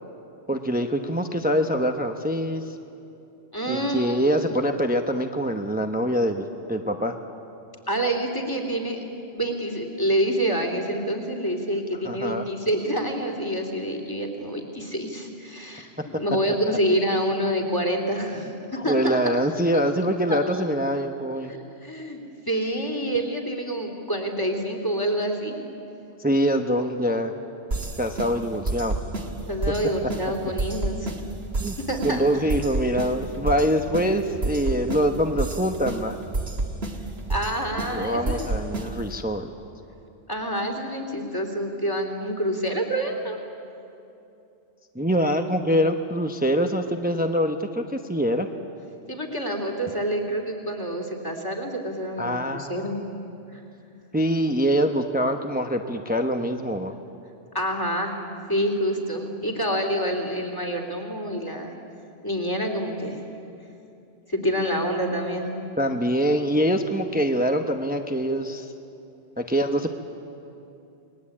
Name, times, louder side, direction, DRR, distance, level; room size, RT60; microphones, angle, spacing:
voice 1, 0.5-2.6 3.7-7.1 12.0-12.5 18.9-21.5 26.2-27.3 28.0-29.0 30.0-30.1 31.6-31.8 32.0-36.2 37.9-39.5 44.9-48.5 52.2-52.9 54.1-56.9 65.8-68.7 69.4-69.9, equal, 10° right, 5 dB, 1.0 m, -24 dB
voice 2, 3.5-4.3 7.9-9.1 9.3-18.5 18.8-19.4 20.3-20.6 21.5-22.2 22.5-25.6 29.5-31.1 31.9-32.2 37.3-38.5 40.3-43.4 49.1-53.0 57.5-58.2 58.5-61.7 62.2-63.2 64.3-65.5, equal, 20° left, 3 dB, 3.2 m, -27 dB
sound 1, 27.7-39.2, right 2 dB, 60° right, 2.1 m, -31 dB
29.5 x 21.0 x 8.7 m, 2.8 s
omnidirectional pair, 1.2 m